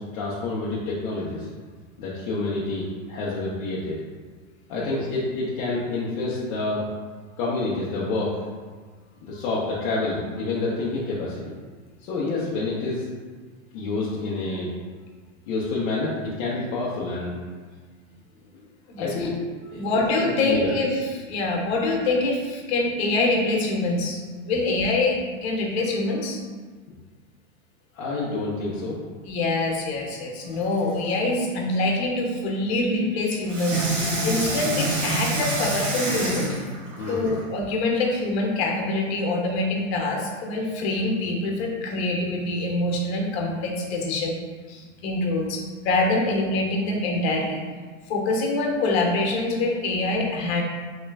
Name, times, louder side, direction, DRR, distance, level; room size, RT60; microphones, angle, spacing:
voice 1, 0.0-1.5 2.0-3.9 4.7-6.8 7.4-8.3 9.2-11.5 12.0-13.1 13.7-14.7 15.5-17.4 18.5-18.6 19.0-19.3 19.7-19.8 20.2-20.7 27.9-29.0 37.0-37.3, left 3 dB, 35° left, -6 dB, 0.6 m, -28 dB
voice 2, 4.7-5.1 18.9-19.3 19.7-26.4 29.2-36.5 37.1-44.3 44.7-47.6 48.1-50.6, left 2 dB, 55° left, 1 dB, 1.0 m, -25 dB
Water tap faucet / Sink (filling or washing), 30.5-31.2 33.5-37.4 38.1-38.2, right 1 dB, 30° right, 1.1 m, -27 dB
3.2 x 2.9 x 3.4 m, 1.5 s
hypercardioid pair, 135°, 40 cm